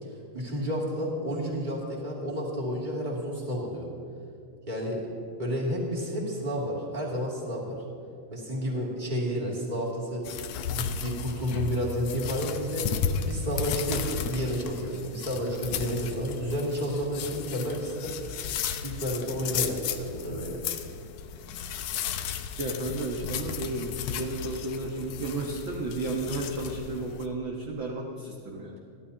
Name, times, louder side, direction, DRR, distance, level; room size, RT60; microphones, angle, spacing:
voice 1, 0.0-3.9 4.7-5.0 5.4-7.7 8.3-10.3 10.7-12.9 13.2-18.1 18.8-20.6, equal, 15° right, -4 dB, 2.7 m, -31 dB
sound 1, 10.2-27.2, left 7 dB, 75° left, 1.7 m, -34 dB
voice 2, 22.6-28.8, right 2 dB, 50° right, -2 dB, 1.7 m, -33 dB
29.0 x 12.0 x 2.9 m, 2.5 s
omnidirectional pair, 3.4 m